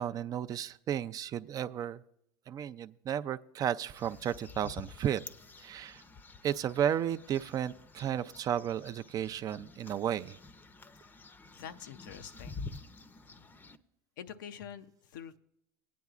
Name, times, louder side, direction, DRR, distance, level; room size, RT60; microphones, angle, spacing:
voice 1, 0.0-2.0 2.5-5.2 5.6-6.0 6.4-10.4, right 9 dB, 35° right, 12 dB, 0.4 m, -33 dB
sound 1, 3.8-13.8, left 4 dB, 20° left, 0.6 m, -49 dB
voice 2, 11.5-12.7 14.2-15.4, left 8 dB, 85° left, 10 dB, 0.6 m, -46 dB
19.0 x 9.3 x 2.4 m, 0.79 s
supercardioid pair, 105°, 10 cm